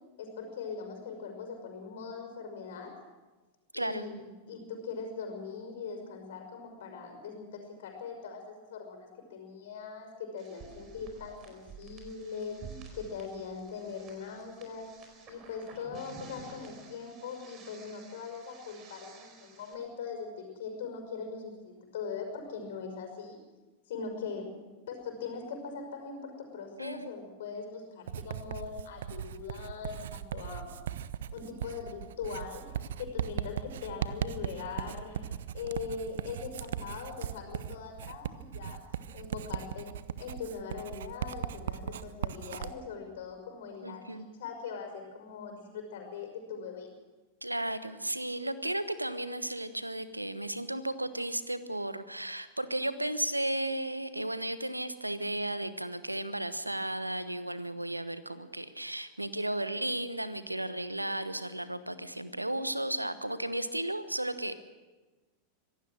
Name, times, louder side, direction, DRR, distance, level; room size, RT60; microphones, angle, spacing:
voice 1, 0.2-3.0 3.7-4.2 4.5-14.9 15.3-23.4 23.9-24.5 24.9-30.7 31.3-38.8 39.1-39.9 40.2-46.9, left 5 dB, 55° left, 4 dB, 5.8 m, -41 dB
voice 2, 3.7-4.0 26.8-27.1 43.8-44.3 47.4-64.5, right 1 dB, 85° right, 14 dB, 1.1 m, -34 dB
sound 1, 10.4-19.7, right 4 dB, 35° right, 4.6 m, -51 dB
Writing, 28.1-42.7, right 9 dB, 60° right, 0.7 m, -38 dB
25.0 x 17.5 x 6.3 m, 1.2 s
figure-of-eight pair, 90°, 0 cm